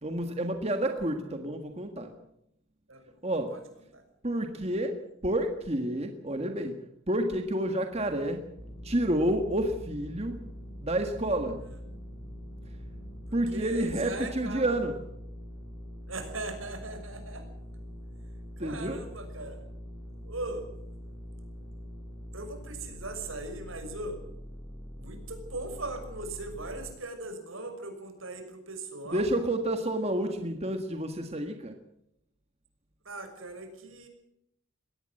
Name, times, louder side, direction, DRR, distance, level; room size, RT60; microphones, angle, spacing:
voice 1, 0.0-2.1 3.2-3.5 4.2-4.9 5.2-6.7 7.1-8.4 8.8-10.4 10.8-11.6 13.3-14.9 18.6-19.0 29.1-31.8, right 1 dB, 30° right, 5 dB, 1.6 m, -29 dB
sound 1, 7.9-13.9, right 1 dB, 50° left, 2.5 m, -53 dB
sound 2, 8.6-26.9, equal, 10° left, 6.5 m, -44 dB
voice 2, 13.3-14.7 16.1-17.4 18.6-19.6 20.2-20.6 22.3-24.2 24.9-29.3 30.2-30.4 33.0-34.1, right 2 dB, 75° right, 5 dB, 6.1 m, -39 dB
22.0 x 18.0 x 7.9 m, 0.80 s
head